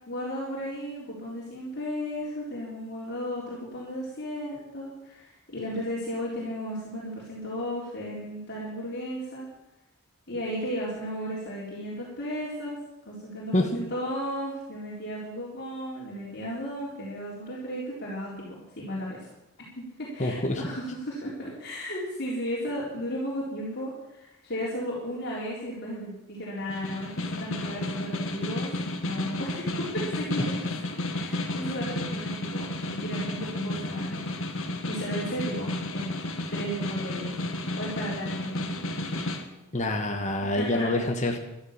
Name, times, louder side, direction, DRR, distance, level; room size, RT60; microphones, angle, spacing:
voice 1, 0.1-9.5 10.3-12.8 13.1-19.3 19.8-28.7 29.0-30.6 31.1-32.6 32.9-34.3 34.8-36.1 36.5-37.3 37.7-38.8 40.4-40.9, equal, 50° left, -6 dB, 4.1 m, -34 dB
voice 2, 20.2-20.6 39.7-41.4, left 1 dB, 35° left, 3 dB, 1.6 m, -26 dB
Snare drum, 26.7-39.4, left 1 dB, 70° left, 1.8 m, -32 dB
14.0 x 12.0 x 7.4 m, 0.90 s
head